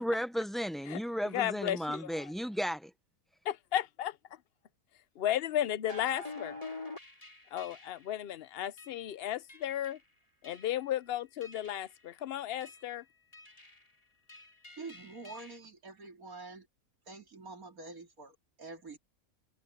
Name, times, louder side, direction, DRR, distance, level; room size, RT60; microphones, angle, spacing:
voice 1, 0.0-2.9, equal, ahead, 0.6 m, -34 dB
voice 2, 1.3-2.3 3.4-4.2 5.2-6.6 7.5-10.0 10.4-13.0, left 11 dB, 55° left, 0.8 m, -34 dB
sound 1, 5.8-8.1 8.8-9.0 9.5-10.0 10.4-10.9 11.4-12.0 12.6-12.9 13.3-13.9 14.3-15.6, left 2 dB, 25° left, 3.5 m, -47 dB
voice 3, 14.8-16.7 17.1-19.0, right 3 dB, 80° right, 4.1 m, -47 dB
omnidirectional pair, 1.5 m